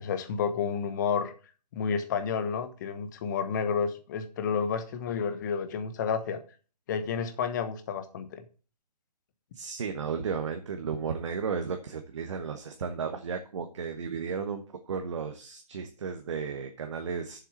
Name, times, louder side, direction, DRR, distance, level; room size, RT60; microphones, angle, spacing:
voice 1, 0.0-1.3 1.7-6.4 6.9-8.4, left 6 dB, 25° left, 9 dB, 1.1 m, -30 dB
voice 2, 9.5-17.4, right 6 dB, 45° right, 6 dB, 1.1 m, -34 dB
7.2 x 7.2 x 6.6 m, 0.37 s
figure-of-eight pair, 140°, 21 cm